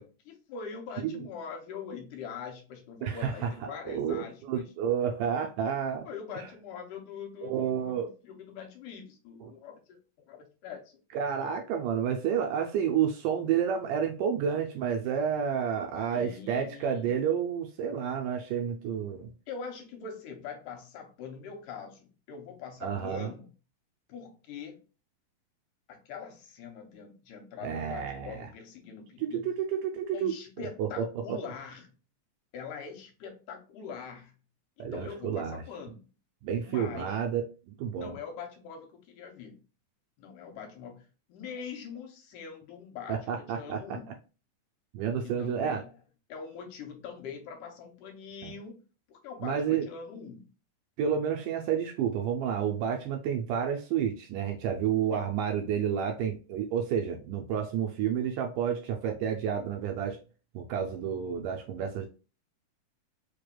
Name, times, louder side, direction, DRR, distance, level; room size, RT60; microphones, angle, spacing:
voice 1, 0.0-4.7 6.1-10.0 10.3-10.8 16.1-17.1 19.5-23.5 24.1-24.8 25.9-29.5 30.1-31.9 32.5-34.4 34.8-36.1 36.6-37.3 37.9-39.6 40.2-44.2 45.2-45.9 46.3-48.8 49.1-50.5 55.1-55.2, left 6 dB, 75° left, 4 dB, 2.2 m, -43 dB
voice 2, 3.0-3.5 3.9-6.1 6.3-6.5 7.4-8.1 9.4-9.5 11.1-19.3 22.8-23.3 27.6-28.5 29.2-30.3 30.6-31.4 34.8-35.6 36.4-38.2 43.1-44.0 44.9-45.8 48.4-48.5 49.4-49.9 51.0-60.2 60.5-62.1, right 8 dB, 80° right, 4 dB, 2.0 m, -30 dB
5.1 x 3.3 x 2.2 m, 0.33 s
omnidirectional pair, 4.1 m